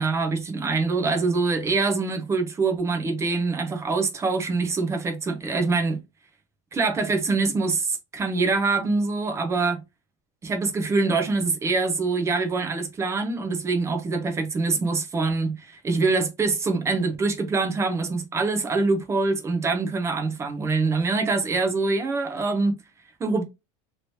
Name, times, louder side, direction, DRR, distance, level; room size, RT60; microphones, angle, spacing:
voice 1, 0.0-6.0 6.7-9.8 10.4-22.8 23.2-23.4, right 3 dB, 15° right, 0.7 m, -24 dB
3.2 x 3.0 x 2.7 m
supercardioid pair, 150°, 16 cm